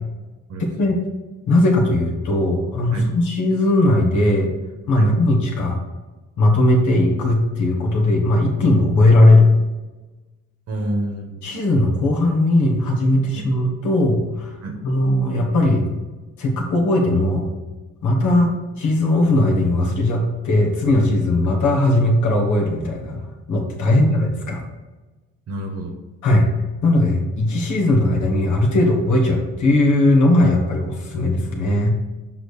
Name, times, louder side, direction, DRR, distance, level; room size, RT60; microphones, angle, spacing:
voice 1, 0.5-1.0 2.9-3.1 5.0-5.1 10.7-11.5 13.3-13.5 14.6-14.8 18.2-18.5 23.9-24.2 25.5-26.0, right 1 dB, 55° right, 2 dB, 1.0 m, -29 dB
voice 2, 1.5-4.5 4.9-5.8 6.4-9.5 11.4-14.5 14.8-15.8 16.4-17.5 18.0-18.5 18.8-23.2 23.5-24.6 26.2-26.5 26.8-31.9, left 1 dB, 75° left, 0 dB, 1.4 m, -18 dB
6.4 x 3.8 x 5.0 m, 1.2 s
cardioid pair, 90°, 30 cm